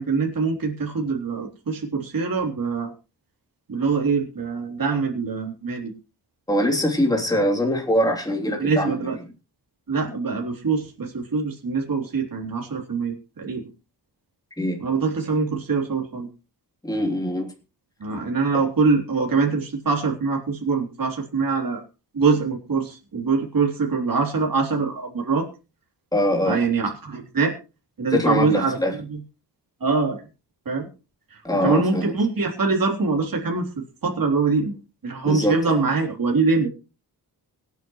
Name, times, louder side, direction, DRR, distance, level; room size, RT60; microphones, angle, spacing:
voice 1, 0.0-2.9 3.7-5.9 8.6-9.2 9.9-13.7 14.8-16.3 18.0-21.8 22.1-25.5 26.4-27.5 28.0-28.8 29.1-29.2 29.8-30.2 30.7-30.9 31.3-34.7 35.0-36.7, right 4 dB, 55° right, 1 dB, 3.6 m, -24 dB
voice 2, 6.5-9.0 14.6-14.8 16.8-17.5 26.1-26.6 28.1-28.9 31.4-32.1 35.2-35.8, left 1 dB, 10° left, 0 dB, 3.3 m, -23 dB
24.5 x 9.3 x 3.2 m, 0.32 s
wide cardioid pair, 95°, 41 cm